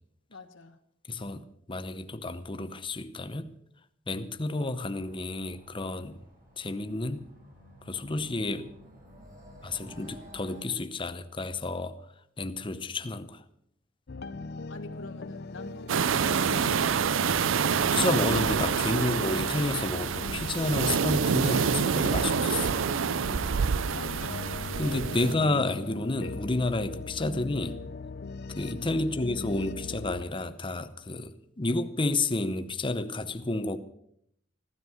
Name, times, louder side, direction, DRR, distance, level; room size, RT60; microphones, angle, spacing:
voice 1, 0.3-0.8 14.1-17.2 23.4-24.1 28.9-29.2, left 2 dB, 80° left, 1.5 m, -47 dB
voice 2, 1.1-3.5 4.1-6.2 6.6-7.2 7.9-8.7 9.6-12.0 12.4-13.4 17.9-22.7 24.8-27.8 28.5-33.8, left 2 dB, 25° left, 0.8 m, -30 dB
sound 1, 4.9-10.6, equal, 50° right, 5.1 m, -52 dB
sound 2, 14.1-30.2, left 3 dB, 55° left, 0.6 m, -39 dB
sound 3, 15.9-25.3, right 6 dB, 80° right, 0.5 m, -27 dB
15.5 x 12.5 x 6.3 m
head